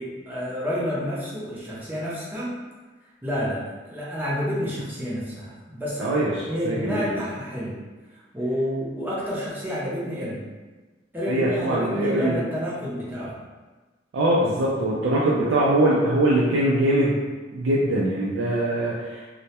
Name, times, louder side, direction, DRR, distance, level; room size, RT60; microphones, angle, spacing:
voice 1, 0.0-2.6 3.2-3.6 3.9-6.1 6.5-7.8 8.1-10.4 11.1-13.4, equal, 10° right, -7 dB, 0.5 m, -29 dB
voice 2, 6.0-7.2 11.3-12.4 14.1-17.2 17.5-19.3, right 1 dB, 70° right, -5 dB, 0.3 m, -22 dB
2.2 x 2.0 x 2.8 m, 1.3 s
head